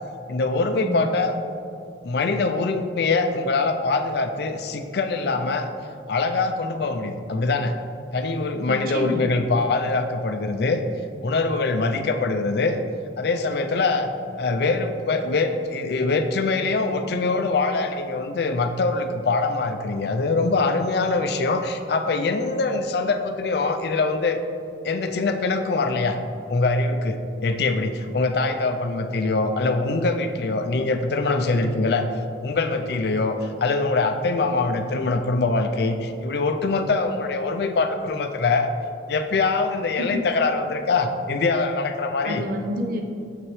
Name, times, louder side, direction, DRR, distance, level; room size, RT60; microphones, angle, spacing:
voice 1, 0.3-1.3 2.0-5.7 6.1-7.7 8.1-10.8 11.2-12.8 13.2-14.1 14.4-24.4 24.8-26.2 26.5-32.1 32.4-38.7 39.1-42.4, left 3 dB, 60° left, 7 dB, 0.4 m, -23 dB
voice 2, 8.7-9.2 40.0-40.2 42.2-43.0, equal, 55° right, 2 dB, 0.7 m, -28 dB
7.6 x 6.0 x 3.1 m, 2.6 s
head